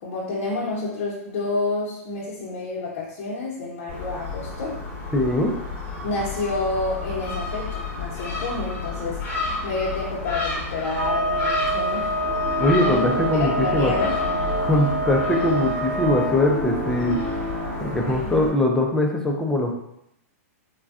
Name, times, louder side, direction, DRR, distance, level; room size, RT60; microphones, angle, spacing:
voice 1, 0.0-4.8 6.0-9.2 9.6-12.1 12.8-13.0 13.3-14.5 14.8-15.0 18.1-18.4, left 3 dB, 55° left, -6 dB, 0.7 m, -29 dB
Gull seagull, 3.9-18.5, left 3 dB, 20° left, 0.8 m, -32 dB
voice 2, 5.1-5.5 12.6-13.9 14.6-17.2 17.8-19.7, left 1 dB, 5° left, 0 dB, 0.3 m, -21 dB
sound 1, 10.9-16.4, right 1 dB, 60° right, 0.6 m, -26 dB
sound 2, 12.0-18.1, equal, 35° right, 1.3 m, -31 dB
3.3 x 2.2 x 2.4 m, 0.79 s
hypercardioid pair, 145°, 8 cm